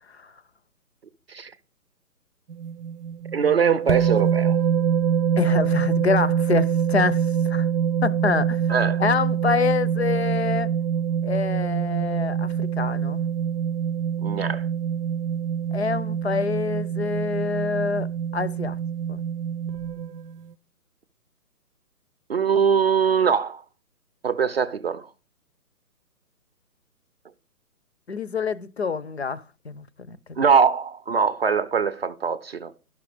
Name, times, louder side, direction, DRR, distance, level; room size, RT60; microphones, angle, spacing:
sound 1, 2.5-20.4, right 8 dB, 80° right, 0.7 m, -25 dB
voice 1, 3.3-4.6 8.7-9.0 14.2-14.7 22.3-23.6 24.2-25.1 30.4-32.7, right 6 dB, 40° right, 0.6 m, -22 dB
voice 2, 5.4-7.2 7.5-7.7 8.0-8.6 9.0-10.7 11.2-13.2 15.7-18.1 18.3-18.8 19.1-19.2 28.1-30.2, left 5 dB, 45° left, 0.6 m, -26 dB
12.0 x 6.1 x 4.9 m
hypercardioid pair, 160°, 47 cm